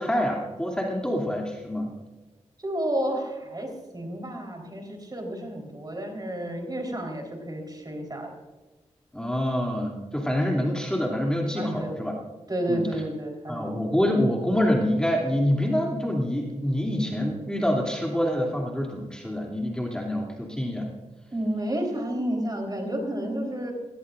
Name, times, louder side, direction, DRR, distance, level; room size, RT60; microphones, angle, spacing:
voice 1, 0.0-1.9 9.1-12.1 12.7-12.9 13.5-20.9, equal, 5° left, -2 dB, 2.8 m, -26 dB
voice 2, 2.6-8.3 11.6-11.9 12.5-13.7 21.3-23.7, right 1 dB, 35° right, 2 dB, 4.0 m, -31 dB
17.5 x 16.5 x 2.6 m, 1.2 s
cardioid pair, 55°, 12 cm